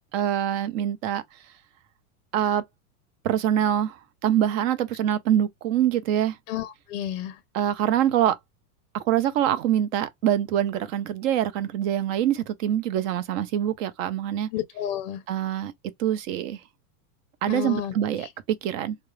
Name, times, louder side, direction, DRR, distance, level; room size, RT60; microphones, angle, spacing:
voice 1, 0.1-1.2 2.3-2.6 3.2-6.4 7.5-8.4 8.9-14.5 15.3-15.7 16.0-16.6 17.4-19.0, right 10 dB, 55° right, 0.6 m, -24 dB
voice 2, 6.5-7.4 14.5-15.2 17.5-17.9 18.2-18.3, left 11 dB, 40° left, 0.5 m, -31 dB
2.3 x 2.1 x 3.1 m
supercardioid pair, 155°, 47 cm